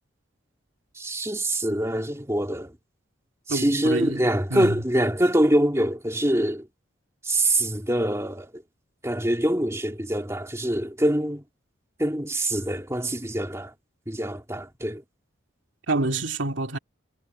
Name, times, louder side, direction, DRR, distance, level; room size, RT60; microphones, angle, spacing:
voice 1, 1.0-2.7 3.5-6.7 7.2-8.5 9.0-11.4 12.0-13.7 14.1-15.0, right 1 dB, 15° right, 2.8 m, -24 dB
voice 2, 3.5-4.8 15.9-16.8, right 2 dB, 75° right, 2.4 m, -27 dB
head